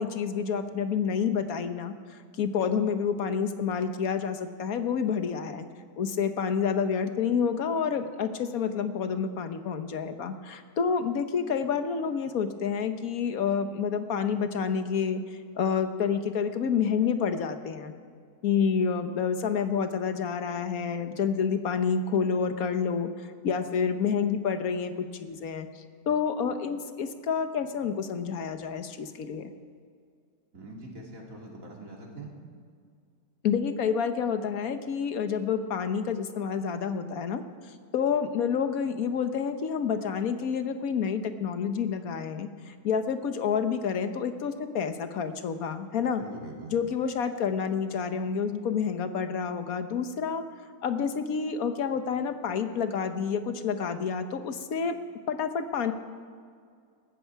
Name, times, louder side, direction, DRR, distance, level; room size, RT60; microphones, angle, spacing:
voice 1, 0.0-5.7 6.0-15.2 15.6-17.9 18.4-25.7 26.1-29.5 33.4-37.4 37.9-46.2 46.7-50.4 50.8-55.0 55.3-55.9, left 6 dB, 70° left, 9 dB, 1.4 m, -29 dB
voice 2, 30.5-32.3 46.2-46.8, right 2 dB, 60° right, -2 dB, 3.2 m, -43 dB
20.0 x 14.5 x 4.7 m, 2.2 s
omnidirectional pair, 1.6 m